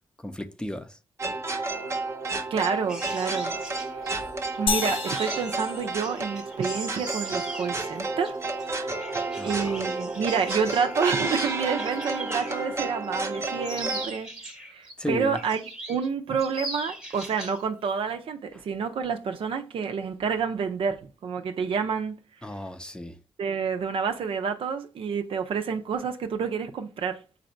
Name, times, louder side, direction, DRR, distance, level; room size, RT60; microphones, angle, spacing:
voice 1, 0.2-1.0 9.4-9.8 15.0-15.4 22.4-23.2, left 1 dB, 10° left, 0.5 m, -34 dB
sound 1, 1.2-14.1, right 3 dB, 30° right, 0.7 m, -31 dB
voice 2, 2.5-3.5 4.6-8.4 9.4-14.3 14.7-15.6 15.9-22.2 23.4-27.2, right 6 dB, 75° right, 0.5 m, -29 dB
sound 2, 2.9-12.7 13.0-14.9 15.3-16.1 16.4-17.6 17.9-18.1, right 1 dB, 10° right, 1.0 m, -40 dB
sound 3, 4.7-6.6, left 5 dB, 70° left, 0.6 m, -31 dB
4.0 x 2.6 x 4.3 m
cardioid pair, 70°, 9 cm